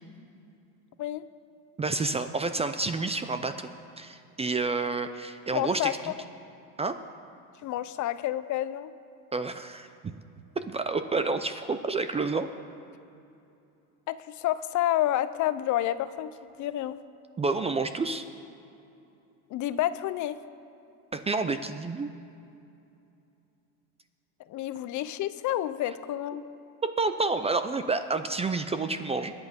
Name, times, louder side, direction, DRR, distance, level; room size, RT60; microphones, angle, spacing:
voice 1, 1.8-3.7 4.0-6.1 6.8-7.0 9.3-9.9 10.6-12.5 17.4-18.2 21.1-22.1 26.8-29.3, right 3 dB, 15° right, 9 dB, 0.4 m, -29 dB
voice 2, 5.5-5.9 7.6-8.9 14.1-17.0 19.5-20.4 24.5-26.4, left 13 dB, 50° left, 14 dB, 0.7 m, -29 dB
22.0 x 8.5 x 5.2 m, 2.7 s
supercardioid pair, 115°, 39 cm